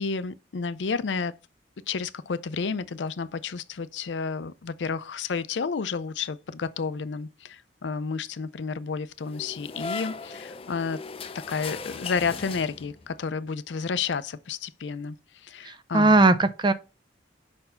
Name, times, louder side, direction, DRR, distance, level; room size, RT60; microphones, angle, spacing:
voice 1, 0.0-1.3 1.9-11.0 11.5-15.2 15.4-16.1, left 5 dB, 85° left, 0.5 m, -31 dB
sound 1, 9.2-13.2, left 4 dB, 30° left, 0.5 m, -38 dB
voice 2, 15.6-16.7, right 2 dB, 25° right, 0.5 m, -19 dB
5.3 x 4.4 x 5.6 m
head